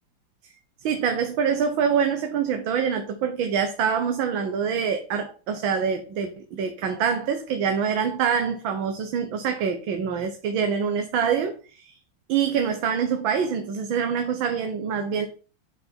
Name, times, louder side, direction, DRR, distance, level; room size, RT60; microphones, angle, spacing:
voice 1, 0.8-12.0 12.3-15.3, right 7 dB, 90° right, 6 dB, 1.7 m, -25 dB
9.3 x 4.8 x 4.4 m, 0.36 s
omnidirectional pair, 2.1 m